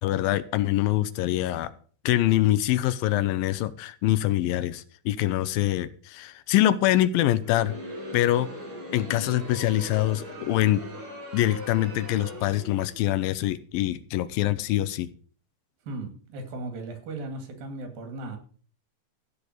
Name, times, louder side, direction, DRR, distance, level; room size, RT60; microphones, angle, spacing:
voice 1, 0.0-1.7 2.1-7.7 8.1-8.5 8.9-10.8 11.3-15.1, left 14 dB, 85° left, 2.5 m, -24 dB
Crowd, 7.3-13.1, equal, 60° right, 7.1 m, -40 dB
voice 2, 15.8-18.4, right 2 dB, 80° right, 4.1 m, -36 dB
15.0 x 5.2 x 7.9 m
omnidirectional pair, 4.1 m